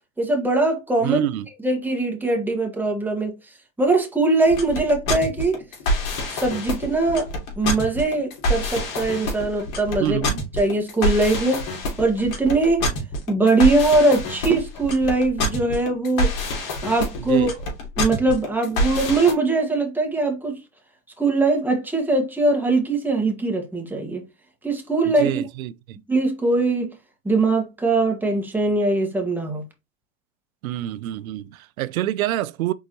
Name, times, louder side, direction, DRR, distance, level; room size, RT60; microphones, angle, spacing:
voice 1, 0.2-1.2 1.6-3.4 3.8-5.6 6.3-7.3 7.6-10.2 10.6-11.6 12.0-12.8 13.3-16.3 16.8-17.5 18.0-20.6 21.2-24.2 24.6-25.3 26.1-26.9 27.2-29.6, right 2 dB, 5° right, 1.5 m, -21 dB
voice 2, 1.0-1.5 10.0-10.4 17.2-17.5 25.0-26.0 30.6-32.7, right 13 dB, 90° right, 0.5 m, -26 dB
sound 1, 4.4-19.3, left 1 dB, 50° left, 2.4 m, -26 dB
4.6 x 3.9 x 2.9 m
hypercardioid pair, 100°, 40 cm